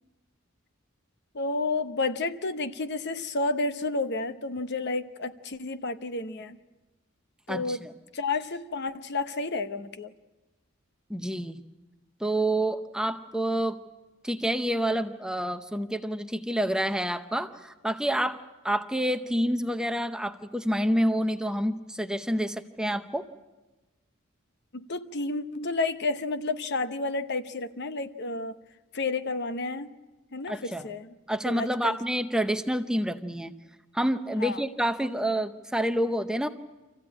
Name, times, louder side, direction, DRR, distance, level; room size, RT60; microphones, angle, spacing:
voice 1, 1.3-6.6 7.5-7.8 8.1-10.1 24.7-28.6 28.9-29.9 30.3-31.1 31.4-32.0 34.4-34.6, left 3 dB, 55° left, 10 dB, 0.9 m, -31 dB
voice 2, 7.5-7.9 11.1-11.6 12.2-13.8 14.2-18.4 18.6-23.2 30.5-30.9 31.3-33.5 33.9-36.5, right 1 dB, 5° right, 8 dB, 0.7 m, -28 dB
25.5 x 15.5 x 8.7 m, 1.1 s
head